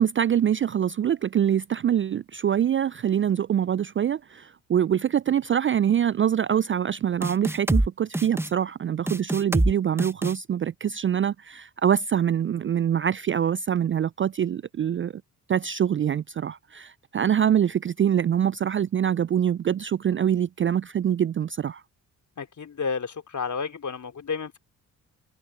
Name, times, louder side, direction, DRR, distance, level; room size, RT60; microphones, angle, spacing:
voice 1, 0.0-15.1 15.5-21.8, right 9 dB, 30° right, 0.5 m, -24 dB
sound 1, 7.2-7.9 8.1-8.5 9.1-9.7 10.0-10.3, right 1 dB, 5° right, 1.1 m, -24 dB
voice 2, 22.4-24.6, left 5 dB, 40° left, 3.5 m, -31 dB
hypercardioid pair, 45°, 43 cm